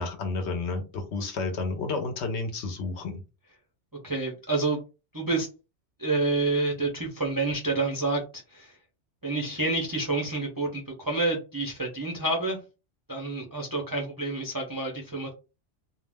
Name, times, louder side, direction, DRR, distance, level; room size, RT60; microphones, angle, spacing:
voice 1, 0.0-3.2, left 3 dB, 70° left, 5 dB, 1.0 m, -31 dB
voice 2, 4.0-4.8 5.1-5.5 6.0-8.8 9.2-12.6 13.1-15.3, right 2 dB, 30° right, -1 dB, 0.4 m, -28 dB
2.5 x 2.0 x 3.3 m, 0.30 s
omnidirectional pair, 1.2 m